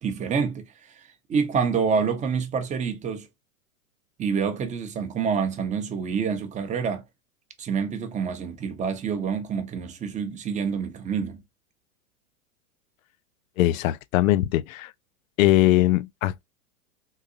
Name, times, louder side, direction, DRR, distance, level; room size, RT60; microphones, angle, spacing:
voice 1, 0.0-3.3 4.2-7.0 7.6-11.4, right 6 dB, 15° right, 0.6 m, -27 dB
voice 2, 13.6-14.9 15.4-16.4, left 15 dB, 65° left, 0.5 m, -21 dB
3.8 x 2.5 x 2.6 m
hypercardioid pair, 110°, 43 cm